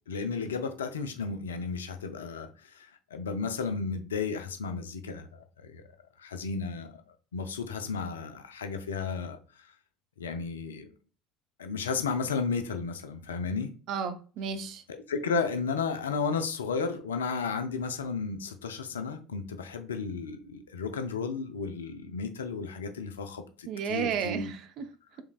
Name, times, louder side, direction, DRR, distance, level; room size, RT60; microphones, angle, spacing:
voice 1, 0.1-5.3 5.6-5.8 6.2-7.0 7.3-9.7 10.2-10.9 11.6-13.7 14.9-24.5, left 5 dB, 75° left, 0.5 m, -33 dB
voice 2, 13.9-14.8 23.7-24.9, right 7 dB, 50° right, 0.5 m, -32 dB
4.7 x 3.4 x 2.3 m
figure-of-eight pair, 65°, 0 cm